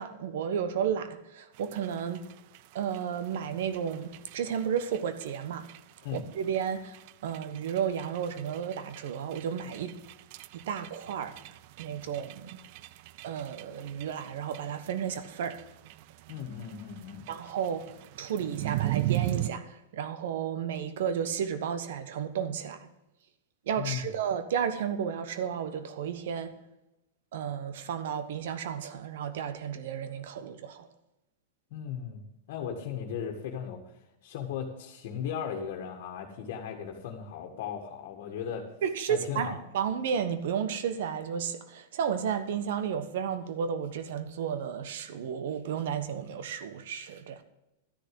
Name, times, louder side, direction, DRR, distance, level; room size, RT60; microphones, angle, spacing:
voice 1, 0.0-2.3 2.7-5.7 6.1-7.0 7.2-10.0 10.5-11.4 11.8-12.5 13.2-15.6 17.3-22.9 23.7-26.6 27.3-30.9 38.8-47.4, right 8 dB, 70° right, 1.2 m, -33 dB
sound 1, 1.5-19.5, right 15 dB, 50° right, 0.5 m, -39 dB
voice 2, 16.3-17.3 23.8-24.1 31.7-32.2 32.5-33.8 34.2-38.7 39.1-39.6, left 8 dB, 55° left, 1.8 m, -36 dB
12.5 x 6.7 x 7.8 m
supercardioid pair, 140°, 0 cm